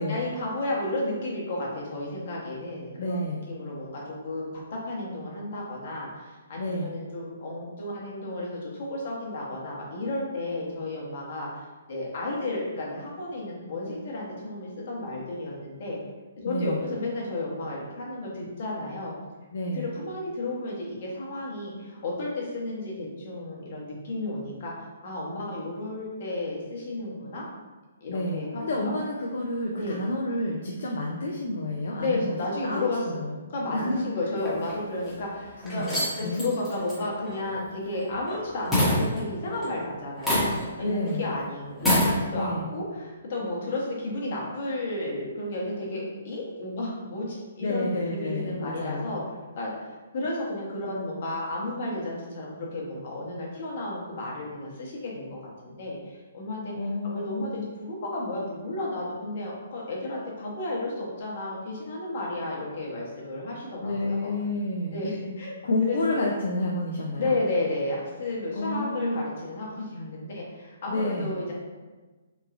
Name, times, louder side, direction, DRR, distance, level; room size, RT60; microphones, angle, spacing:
voice 1, 0.0-3.2 3.5-11.5 11.9-16.0 16.4-19.1 19.7-27.4 28.0-28.9 29.7-30.0 31.9-33.2 33.5-35.9 36.2-49.2 49.6-49.7 50.1-56.7 57.0-64.3 64.9-65.6 65.9-66.3 67.2-71.5, left 2 dB, 55° left, -4 dB, 0.9 m, -32 dB
voice 2, 3.0-3.5 6.6-6.9 16.4-16.8 19.5-19.9 28.1-32.3 32.6-33.4 33.7-34.0 35.6-36.4 40.8-41.3 42.3-42.7 47.6-49.1 56.7-57.7 63.8-65.0 65.6-67.3 68.5-69.3 70.9-71.4, left 1 dB, 70° left, -2 dB, 0.3 m, -30 dB
sound 1, 34.4-35.1 35.6-38.4 38.7-39.8 40.2-40.8 41.1-41.2 41.7-42.2, left 1 dB, ahead, 1.0 m, -26 dB
3.0 x 2.3 x 2.4 m, 1.3 s
hypercardioid pair, 140°, 0 cm